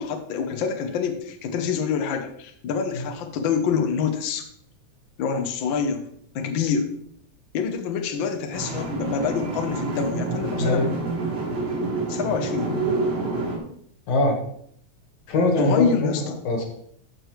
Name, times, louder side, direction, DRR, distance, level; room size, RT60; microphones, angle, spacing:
voice 1, 0.0-4.5 5.2-6.0 6.3-6.9 7.5-10.9 12.1-12.8 15.6-16.4, left 6 dB, 80° left, 5 dB, 1.0 m, -26 dB
sound 1, 8.5-13.6, right 3 dB, 50° right, 2.4 m, -27 dB
voice 2, 10.6-10.9 14.1-14.4 15.3-16.7, left 2 dB, 60° left, 1 dB, 2.7 m, -22 dB
14.0 x 4.9 x 3.2 m, 0.66 s
omnidirectional pair, 3.5 m